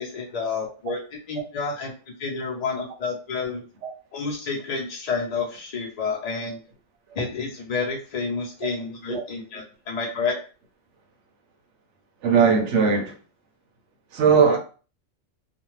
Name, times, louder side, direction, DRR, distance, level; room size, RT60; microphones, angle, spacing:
voice 1, 0.0-1.9 2.2-3.6 4.1-6.6 7.1-10.4 14.4-14.6, left 4 dB, 40° left, 0.6 m, -29 dB
voice 2, 12.2-13.1 14.1-14.6, right 6 dB, 75° right, 0.9 m, -19 dB
2.5 x 2.2 x 3.0 m
omnidirectional pair, 1.3 m